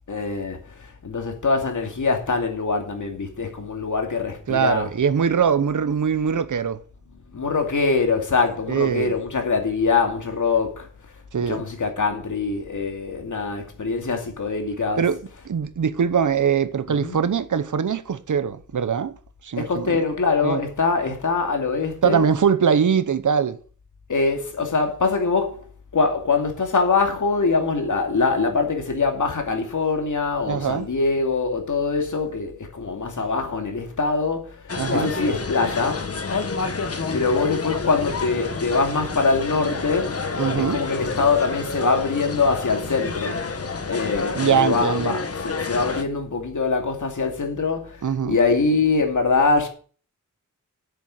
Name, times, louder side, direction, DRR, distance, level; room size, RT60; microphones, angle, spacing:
voice 1, 0.1-5.0 7.3-10.9 11.4-15.4 16.9-17.2 19.6-22.4 24.1-25.6 25.9-36.1 36.9-40.2 40.6-43.4 43.9-49.7, left 4 dB, 65° left, 2.5 m, -23 dB
voice 2, 4.5-6.8 8.7-9.1 11.3-11.6 15.0-15.2 15.4-19.2 19.4-19.9 20.4-20.6 22.0-23.6 30.5-30.9 34.8-35.1 40.4-40.8 44.3-45.2 48.0-48.4, right 7 dB, 65° right, 0.9 m, -22 dB
sound 1, 34.7-46.0, left 4 dB, 45° left, 1.2 m, -29 dB
8.6 x 7.0 x 8.1 m
wide cardioid pair, 125°, 33 cm